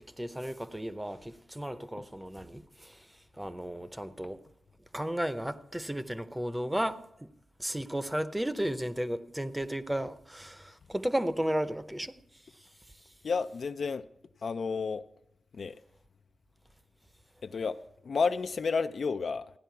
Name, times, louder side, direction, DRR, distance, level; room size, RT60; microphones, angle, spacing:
voice 1, 0.0-4.4 4.9-7.3 7.6-12.2 12.5-13.1, right 1 dB, 10° right, 0.6 m, -34 dB
voice 2, 13.2-14.1 14.4-15.0 15.5-15.8 17.4-19.5, left 5 dB, 65° left, 0.4 m, -31 dB
14.5 x 10.0 x 4.6 m
cardioid pair, 75°, 0 cm